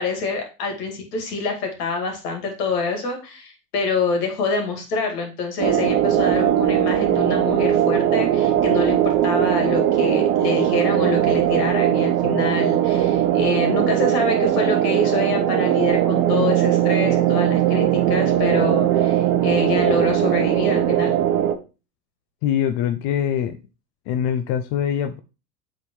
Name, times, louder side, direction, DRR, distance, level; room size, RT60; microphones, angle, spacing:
voice 1, 0.0-21.1, left 4 dB, 65° left, 3 dB, 2.4 m, -26 dB
sound 1, 5.6-21.5, right 11 dB, 45° right, 1.0 m, -19 dB
voice 2, 22.4-23.6 24.1-25.2, left 9 dB, 45° left, 8 dB, 0.6 m, -23 dB
8.0 x 3.9 x 3.1 m, 0.31 s
hypercardioid pair, 85°, 50 cm